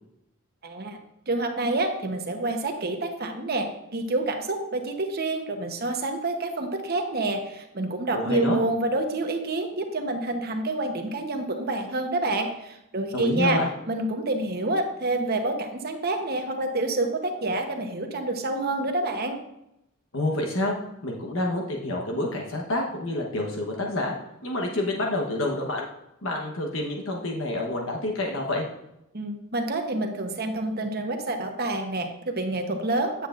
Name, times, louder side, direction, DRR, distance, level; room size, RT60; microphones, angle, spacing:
voice 1, 0.6-1.0 1.3-13.6 13.9-19.4 29.1-33.3, right 2 dB, 50° right, 5 dB, 1.0 m, -28 dB
voice 2, 8.1-8.6 13.1-13.7 20.1-20.8 21.0-24.1 24.4-25.8 26.2-28.7, left 1 dB, 70° left, 1 dB, 1.1 m, -28 dB
9.4 x 7.9 x 2.5 m, 0.83 s
head